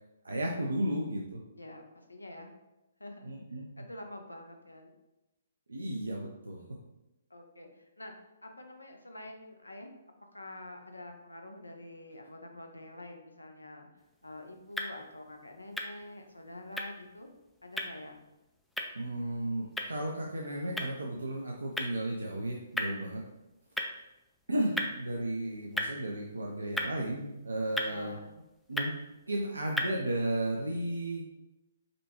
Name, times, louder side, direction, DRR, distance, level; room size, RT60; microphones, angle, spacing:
voice 1, 0.2-1.4 3.2-3.6 5.7-6.6 18.9-23.2 24.5-28.1 28.7-28.9 29.3-31.2, right 1 dB, 80° right, -1 dB, 0.5 m, -34 dB
voice 2, 1.5-2.5 3.0-4.9 7.3-8.1 8.4-13.9 14.2-17.3 17.6-18.2 27.8-28.3, left 1 dB, 85° left, 4 dB, 0.6 m, -47 dB
sound 1, 14.0-30.0, left 1 dB, ahead, 0.4 m, -40 dB
5.1 x 2.3 x 3.0 m, 0.95 s
figure-of-eight pair, 130°, 0 cm